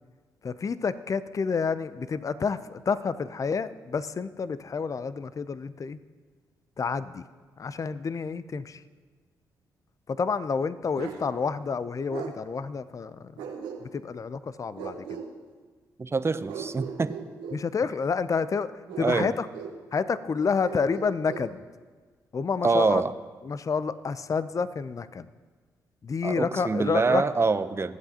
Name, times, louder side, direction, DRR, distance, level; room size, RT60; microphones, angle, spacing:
voice 1, 0.4-6.0 6.8-7.2 7.6-8.8 10.1-13.4 13.8-15.2 17.5-18.7 19.0-19.5 19.9-21.6 22.3-23.0 23.4-25.3 26.0-27.2, left 5 dB, 40° left, 15 dB, 0.5 m, -29 dB
Bark, 11.0-11.2 12.1-12.3 13.4-14.1 14.8-15.3 16.5-17.6 18.9-19.8 20.6-21.5, right 7 dB, 80° right, 1.1 m, -38 dB
voice 2, 16.0-17.2 19.0-19.3 22.6-23.1 26.2-28.0, right 4 dB, 30° right, 13 dB, 0.7 m, -25 dB
22.0 x 7.9 x 2.9 m, 1.5 s
hypercardioid pair, 45°, 9 cm